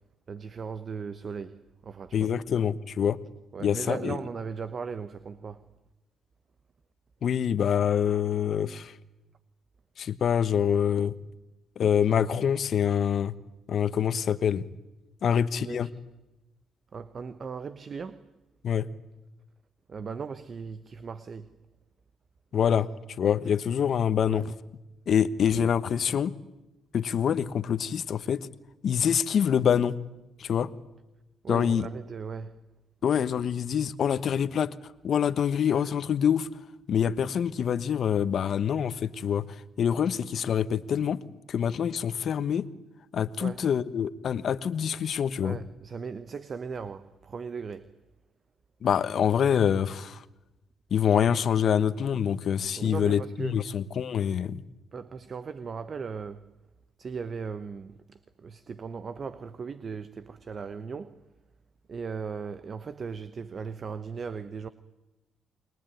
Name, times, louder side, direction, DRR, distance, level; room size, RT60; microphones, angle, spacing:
voice 1, 0.3-2.3 3.5-5.6 15.2-15.9 16.9-18.2 19.9-21.5 24.3-24.4 31.4-32.6 43.4-43.6 45.4-47.9 52.8-53.6 54.9-56.4 57.0-61.2 61.9-64.7, right 5 dB, 45° right, 1.0 m, -38 dB
voice 2, 2.1-3.2 3.6-4.2 7.2-8.9 10.0-11.1 11.8-13.3 13.7-14.7 15.2-15.9 18.6-18.9 22.5-22.9 23.2-24.5 25.1-26.3 26.9-28.5 28.8-30.0 30.4-30.7 31.5-31.9 33.0-34.7 35.0-36.5 36.9-41.2 41.5-42.7 43.1-45.6 48.8-50.2 50.9-54.6, left 8 dB, 60° left, 1.2 m, -25 dB
29.5 x 21.5 x 9.2 m
cardioid pair, 90°, 0 cm